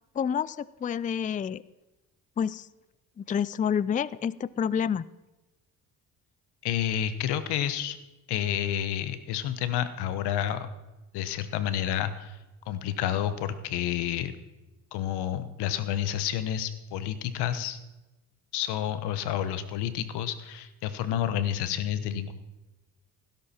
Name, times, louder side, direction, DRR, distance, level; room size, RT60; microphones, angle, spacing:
voice 1, 0.2-1.6 2.4-2.7 3.2-5.0, left 8 dB, 20° left, 20 dB, 0.4 m, -28 dB
voice 2, 6.6-8.0 8.3-10.7 11.1-12.4 12.7-14.3 14.9-17.8 18.5-22.3, left 10 dB, 90° left, 12 dB, 1.1 m, -29 dB
17.0 x 11.0 x 4.4 m, 1.1 s
cardioid pair, 80°, 39 cm